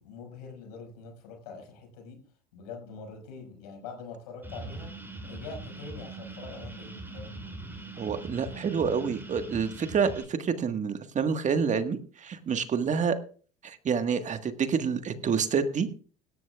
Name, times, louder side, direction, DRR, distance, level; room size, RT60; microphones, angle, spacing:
voice 1, 0.0-2.2 2.5-4.9 5.2-7.4, left 4 dB, 85° left, 3 dB, 5.5 m, -44 dB
sound 1, 4.4-10.2, right 2 dB, 10° right, 6.0 m, -42 dB
voice 2, 8.0-13.2 13.6-16.0, right 6 dB, 40° right, 9 dB, 1.6 m, -28 dB
17.5 x 13.0 x 2.4 m, 0.40 s
hypercardioid pair, 75°, 20 cm